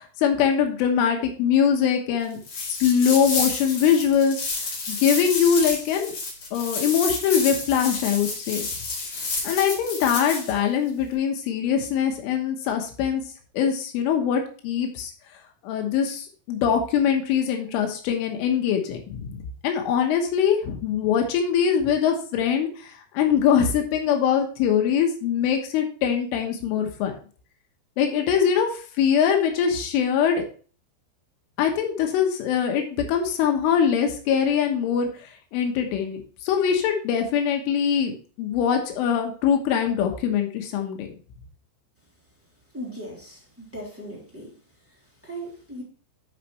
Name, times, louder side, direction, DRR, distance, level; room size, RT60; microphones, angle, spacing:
voice 1, 0.0-2.4 2.7-4.4 4.9-6.1 6.5-8.7 9.4-13.2 13.6-15.1 15.6-27.1 28.0-28.7 29.0-30.4 31.6-35.1 35.5-41.1, left 8 dB, 80° left, 3 dB, 3.6 m, -23 dB
sound 1, 2.4-10.5, left 3 dB, 45° left, 2.7 m, -30 dB
voice 2, 42.7-44.6 44.9-45.8, right 1 dB, 5° right, -5 dB, 1.9 m, -38 dB
11.0 x 5.5 x 3.2 m, 0.40 s
omnidirectional pair, 5.8 m